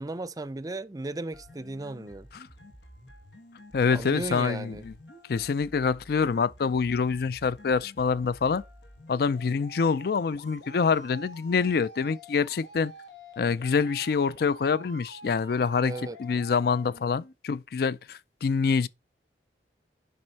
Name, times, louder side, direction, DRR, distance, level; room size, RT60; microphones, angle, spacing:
voice 1, 0.0-2.3 3.9-4.8 15.8-16.2, right 2 dB, 20° right, 0.5 m, -35 dB
sound 1, 1.3-17.3, equal, 90° left, 1.6 m, -49 dB
voice 2, 3.7-4.9 5.3-8.6 9.1-12.9 13.4-18.9, left 5 dB, 60° left, 0.4 m, -26 dB
7.6 x 5.3 x 4.0 m
head